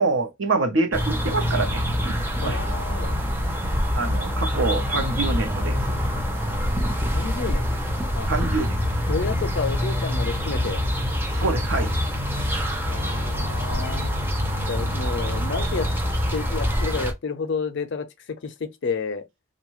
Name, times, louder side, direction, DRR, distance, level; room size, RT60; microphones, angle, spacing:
voice 1, 0.0-2.7 3.9-6.2 8.3-8.8 11.3-11.9, right 3 dB, 70° right, 0.8 m, -26 dB
sound 1, 0.9-17.1, equal, 10° right, 0.5 m, -25 dB
voice 2, 2.4-3.2 7.1-7.6 8.1-8.3 9.1-10.8 12.9-14.2 14.7-15.9 16.3-18.1 18.4-18.5 18.8-19.2, left 5 dB, 60° left, 0.5 m, -30 dB
2.6 x 2.3 x 3.0 m
head